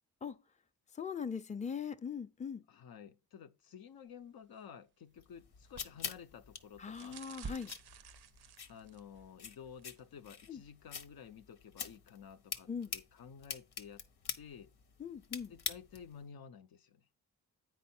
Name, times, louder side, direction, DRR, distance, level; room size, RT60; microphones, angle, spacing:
voice 1, 0.9-2.6 6.8-7.7 10.5-10.6 12.7-12.9 15.0-15.5, left 6 dB, 20° left, 0.5 m, -40 dB
voice 2, 2.7-7.2 8.6-14.1 14.4-14.7 15.5-17.1, left 7 dB, 70° left, 0.7 m, -52 dB
sound 1, 3.9-10.5, right 4 dB, 30° right, 0.5 m, -55 dB
sound 2, 5.2-16.2, left 7 dB, 85° left, 1.0 m, -46 dB
sound 3, 6.9-9.2 9.7-10.0 10.3-10.4, right 10 dB, 90° right, 0.6 m, -56 dB
9.2 x 4.7 x 4.3 m
cardioid pair, 80°, 38 cm